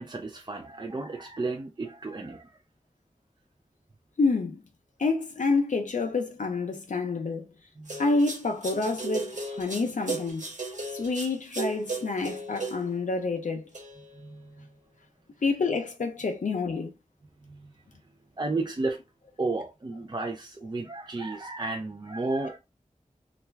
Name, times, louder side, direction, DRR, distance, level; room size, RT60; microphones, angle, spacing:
voice 1, 0.0-2.6 7.8-8.0 14.1-14.7 17.4-17.7 18.4-19.0 19.4-22.6, right 3 dB, 35° right, 0.4 m, -33 dB
voice 2, 4.2-4.6 5.0-7.5 8.0-10.5 10.9-13.7 15.4-16.9, left 3 dB, 75° left, 0.5 m, -28 dB
sound 1, 7.9-13.0 13.7-14.2, right 3 dB, 70° right, 1.3 m, -36 dB
3.2 x 2.3 x 3.2 m
wide cardioid pair, 55°, 13 cm